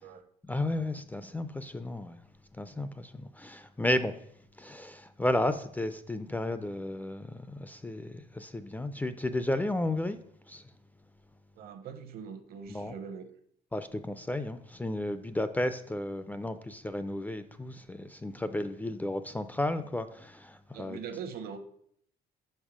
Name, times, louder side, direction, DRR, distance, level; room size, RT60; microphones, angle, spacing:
voice 1, 0.4-2.2 2.6-4.1 4.6-10.2 10.5-10.6 12.7-12.9 13.7-21.0, left 1 dB, 10° left, 0.4 m, -33 dB
voice 2, 11.6-13.3 20.7-21.6, right 7 dB, 65° right, 0.9 m, -42 dB
5.4 x 5.3 x 4.9 m
cardioid pair, 110°, 17 cm